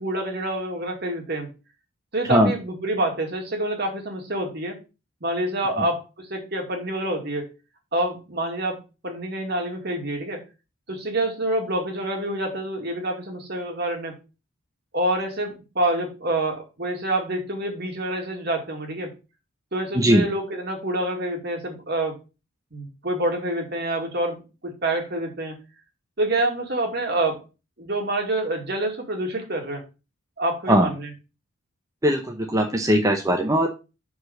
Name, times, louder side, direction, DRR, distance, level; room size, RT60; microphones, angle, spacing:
voice 1, 0.0-1.5 2.1-4.8 5.2-7.5 7.9-10.4 10.9-14.1 14.9-19.1 19.7-22.2 22.7-25.6 26.2-27.4 27.8-29.8 30.4-31.1, right 1 dB, 50° right, 2 dB, 2.3 m, -27 dB
voice 2, 19.9-20.3 30.7-30.9 32.0-33.7, equal, 15° right, 1 dB, 0.8 m, -19 dB
6.3 x 4.9 x 6.4 m, 0.30 s
head